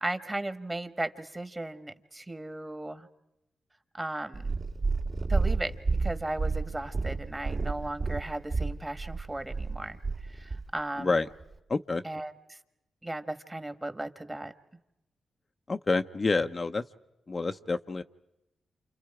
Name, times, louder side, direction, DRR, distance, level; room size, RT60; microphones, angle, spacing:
voice 1, 0.0-3.1 3.9-4.6 5.3-5.7 6.0-10.0 10.3-11.1 12.0-12.6 13.0-14.5, right 1 dB, 20° right, 9 dB, 1.6 m, -36 dB
Purr, 4.3-10.7 11.4-11.5, right 3 dB, 55° right, 2.5 m, -30 dB
voice 2, 11.7-12.0 15.7-16.8 17.3-18.0, left 3 dB, 40° left, 7 dB, 0.8 m, -28 dB
29.0 x 28.0 x 4.9 m, 0.90 s
supercardioid pair, 50°, 0 cm